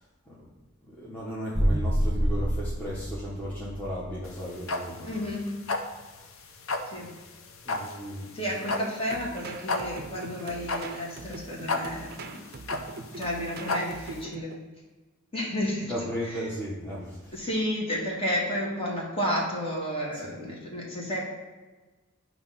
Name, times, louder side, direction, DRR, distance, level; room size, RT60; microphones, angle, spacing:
voice 1, 0.9-5.2 6.9-7.0 7.6-8.4 15.8-17.4, equal, 10° left, -8 dB, 1.0 m, -35 dB
sound 1, 1.6-4.0, equal, 30° right, 1.5 m, -27 dB
sound 2, 4.2-14.2, left 3 dB, 80° left, 0.7 m, -33 dB
voice 2, 5.0-5.5 6.9-7.1 8.3-12.4 13.1-14.5 15.3-15.9 16.3-16.4 17.3-21.2, equal, 25° left, -4 dB, 1.6 m, -31 dB
sound 3, 9.1-14.6, right 3 dB, 50° right, 0.4 m, -42 dB
8.8 x 3.0 x 5.7 m, 1.3 s
head